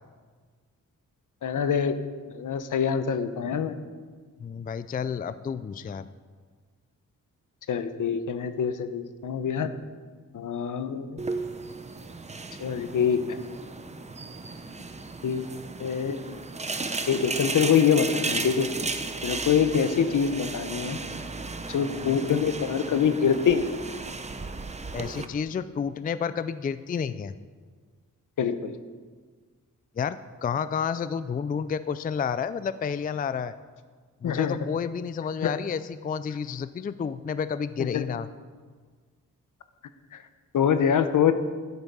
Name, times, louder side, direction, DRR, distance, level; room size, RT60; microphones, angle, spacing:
voice 1, 1.4-1.9 2.3-3.8 7.7-9.7 10.3-11.2 12.6-13.4 15.2-15.5 15.8-16.4 17.1-18.7 19.2-21.0 21.7-23.7 28.4-28.7 34.2-34.6 35.4-35.6 37.8-38.0 40.1-40.2 40.5-41.3, left 7 dB, 70° left, 10 dB, 0.8 m, -25 dB
voice 2, 4.4-6.0 24.9-27.3 30.0-33.5 34.2-38.3, left 6 dB, 30° left, 14 dB, 0.3 m, -30 dB
sound 1, 11.2-25.3, right 3 dB, 20° right, 0.7 m, -35 dB
12.0 x 8.1 x 5.5 m, 1.5 s
wide cardioid pair, 100°, 32 cm